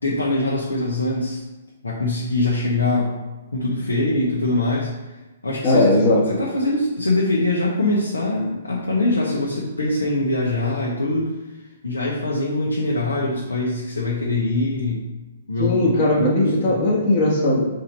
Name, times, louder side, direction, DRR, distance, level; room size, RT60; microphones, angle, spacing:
voice 1, 0.0-1.4 1.8-3.2 3.5-4.9 5.4-5.9 6.3-11.4 11.8-15.0 15.5-15.9 16.2-16.7, left 2 dB, 75° left, -5 dB, 1.3 m, -23 dB
voice 2, 5.6-6.2 15.6-17.7, left 2 dB, 30° left, -7 dB, 1.4 m, -18 dB
4.5 x 4.3 x 5.4 m, 1.1 s
figure-of-eight pair, 120°, 0 cm